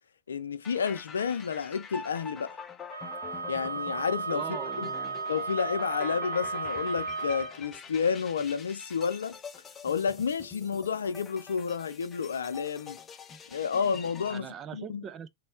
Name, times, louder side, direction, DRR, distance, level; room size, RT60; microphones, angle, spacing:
voice 1, 0.3-2.6 3.5-4.4 4.8-4.9 5.3-9.4 9.8-13.0 13.5-15.0, left 6 dB, 85° left, 0.4 m, -30 dB
sound 1, 0.6-14.4, left 6 dB, 25° left, 0.5 m, -45 dB
Wind instrument woodwind instrument, 2.9-7.6, right 4 dB, 85° right, 0.6 m, -34 dB
voice 2, 4.3-5.2 14.3-15.3, right 9 dB, 30° right, 0.4 m, -41 dB
3.1 x 2.2 x 4.2 m
hypercardioid pair, 105°, 0 cm